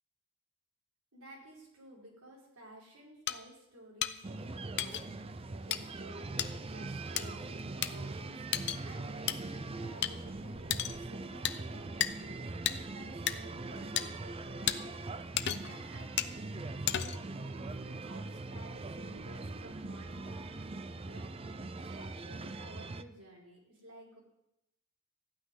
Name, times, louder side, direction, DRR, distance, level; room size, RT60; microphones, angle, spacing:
voice 1, 1.1-6.5 6.7-21.5 21.7-24.2, equal, 85° right, -4 dB, 4.9 m, -54 dB
sound 1, 3.3-3.4 4.0-4.1 4.8-5.0 5.7-5.8 6.4-6.5 7.2-7.3 7.8-7.9 8.5-8.8 9.3-9.4 10.0-10.1 10.7-11.0 11.4-11.6 12.0-12.1 12.7-12.8 13.3-13.4 14.0-14.1 14.7-14.8 15.4-15.8 16.2-16.3 16.9-17.3, left 11 dB, 50° left, 0.6 m, -32 dB
sound 2, 4.2-23.0, right 3 dB, 25° right, 0.4 m, -42 dB
14.0 x 6.0 x 9.8 m, 0.88 s
head